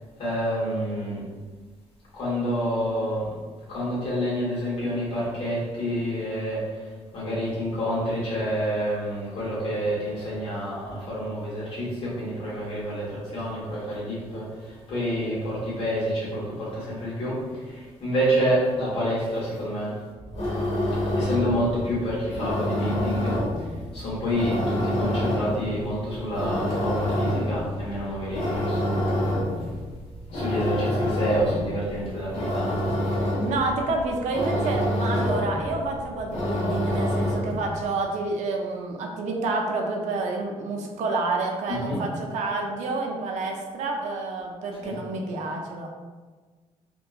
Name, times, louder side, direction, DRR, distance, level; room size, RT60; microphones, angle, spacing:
voice 1, 0.2-1.2 2.1-3.3 3.7-19.9 21.0-23.4 23.9-29.3 30.3-32.7 41.7-42.0 44.8-45.0, equal, 50° left, -7 dB, 1.1 m, -28 dB
sound 1, 20.2-37.7, left 1 dB, 70° left, 0.9 m, -27 dB
voice 2, 33.5-45.9, right 3 dB, 85° right, 1 dB, 0.4 m, -29 dB
2.7 x 2.2 x 2.3 m, 1.4 s
cardioid pair, 170°, 12 cm